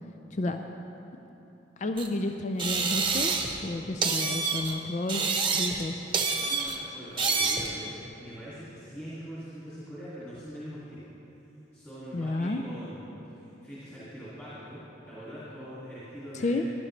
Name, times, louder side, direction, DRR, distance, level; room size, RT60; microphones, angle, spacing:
voice 1, 0.3-0.6 1.8-6.1 12.1-12.7 16.3-16.7, left 2 dB, 40° left, 5 dB, 0.4 m, -31 dB
sound 1, 2.0-2.1 2.6-3.6 4.0-4.7 5.1-5.9 6.1-6.8 7.2-7.7, right 4 dB, 25° right, 0.9 m, -27 dB
voice 2, 6.3-11.1 11.7-14.8 15.0-16.7, equal, 10° left, -12 dB, 2.5 m, -43 dB
15.5 x 11.0 x 3.3 m, 3.0 s
head